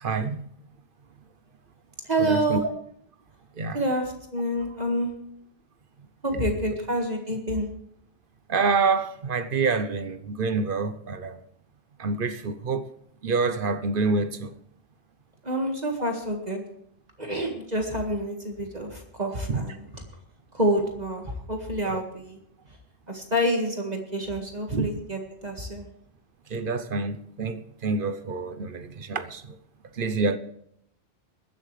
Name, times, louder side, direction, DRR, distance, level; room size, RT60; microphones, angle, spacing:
voice 1, 0.0-0.5 2.2-2.6 3.6-3.8 8.5-11.4 12.0-12.9 13.2-14.5 19.5-19.6 24.7-24.9 26.5-29.6 30.0-30.4, right 4 dB, 55° right, 1.0 m, -27 dB
voice 2, 2.0-2.6 3.7-5.1 6.2-7.7 15.4-16.6 17.2-20.0 20.5-22.4 23.1-25.9, right 1 dB, 40° right, 2.0 m, -28 dB
21.5 x 11.5 x 3.3 m
omnidirectional pair, 1.1 m